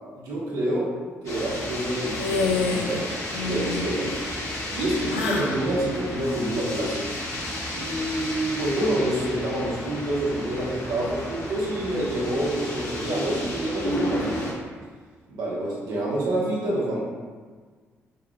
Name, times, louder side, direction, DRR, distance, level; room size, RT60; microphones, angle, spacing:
voice 1, 0.1-0.9 1.2-3.2 3.4-4.1 4.7-7.1 7.7-14.5 15.3-17.0, right 1 dB, 65° right, -5 dB, 1.3 m, -27 dB
sound 1, 1.3-14.5, left 1 dB, 50° left, 1.3 m, -32 dB
sound 2, 2.2-3.0 3.3-3.9 5.1-5.6, left 4 dB, 85° left, 0.3 m, -27 dB
5.4 x 3.6 x 2.4 m, 1.5 s
hypercardioid pair, 40°, 7 cm